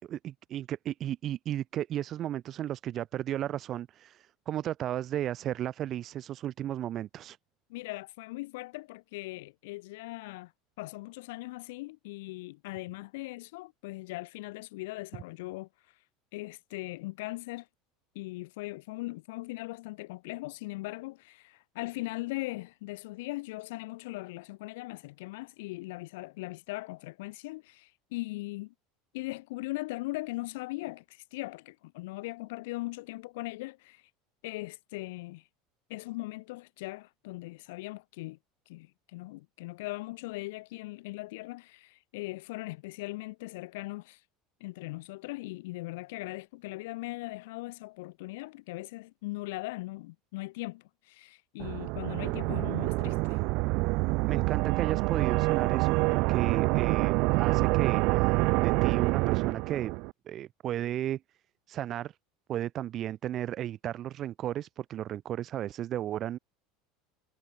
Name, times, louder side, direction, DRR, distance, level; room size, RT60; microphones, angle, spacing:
voice 1, 0.0-7.4 54.2-58.3 58.6-59.9 60.3-61.2 61.7-62.2 62.5-66.4, right 12 dB, 45° right, 2.9 m, -34 dB
voice 2, 7.7-10.5 10.8-16.0 16.3-17.7 18.1-28.7 29.1-34.1 34.4-35.5 35.9-38.4 38.7-44.2 44.6-53.4, left 21 dB, 80° left, 2.1 m, -39 dB
sound 1, 51.6-60.1, right 26 dB, 65° right, 0.8 m, -27 dB
supercardioid pair, 110°, 0 cm